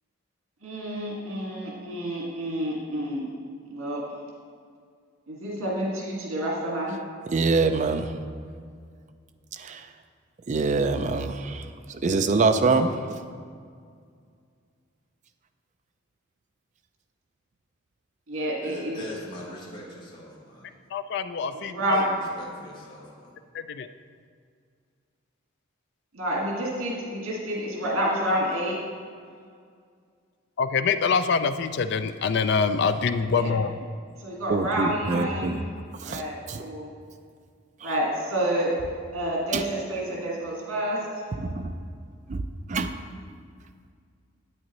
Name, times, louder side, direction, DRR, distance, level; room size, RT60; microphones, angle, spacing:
voice 1, 0.6-3.3 3.7-4.0 5.3-6.9 18.3-19.0 21.7-22.1 26.1-28.8 33.2-33.5 34.2-35.6 36.0-36.9 37.8-38.7 39.1-41.0, right 1 dB, 85° right, 1.9 m, -29 dB
voice 2, 7.3-8.1 9.5-9.9 10.5-13.2 34.5-35.6 36.0-36.2 36.5-36.6 37.8-37.9 39.5-39.6 41.4-41.7 42.3-42.4 42.7-43.0, right 3 dB, 35° right, 0.4 m, -25 dB
voice 3, 18.3-20.8 21.9-23.4, equal, 20° left, 1.4 m, -42 dB
voice 4, 20.9-22.0 23.5-23.9 30.6-33.7, left 5 dB, 55° left, 0.3 m, -25 dB
8.8 x 8.5 x 3.1 m
head